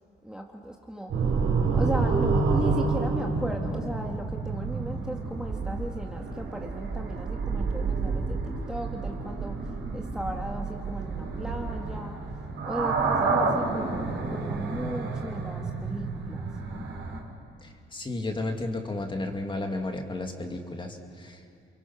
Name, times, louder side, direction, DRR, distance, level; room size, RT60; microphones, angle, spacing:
voice 1, 0.2-1.3 1.7-8.4 8.7-12.2 12.6-16.5, right 1 dB, 5° right, 1 dB, 1.6 m, -36 dB
sound 1, 1.1-17.2, right 4 dB, 70° right, 3.9 m, -29 dB
voice 2, 17.6-21.4, left 2 dB, 25° left, 4 dB, 2.4 m, -33 dB
28.5 x 23.0 x 5.9 m, 2.4 s
cardioid pair, 90°, 20 cm